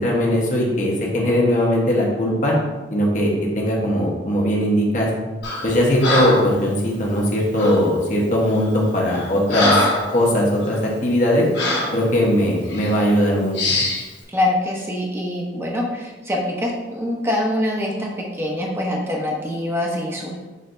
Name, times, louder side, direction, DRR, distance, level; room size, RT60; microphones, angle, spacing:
voice 1, 0.0-2.5 2.9-5.1 5.6-9.7 10.1-11.5 11.9-13.5, equal, 45° left, -3 dB, 1.0 m, -19 dB
Breathing, 5.4-5.7 6.0-6.5 7.6-7.8 8.5-8.7 9.1-10.1 10.6-10.8 11.5-12.0 12.7-12.9 13.5-14.0, left 2 dB, 75° left, 1.3 m, -22 dB
voice 2, 14.3-20.4, left 1 dB, 15° right, -1 dB, 0.8 m, -24 dB
6.3 x 3.3 x 2.6 m, 1.2 s
head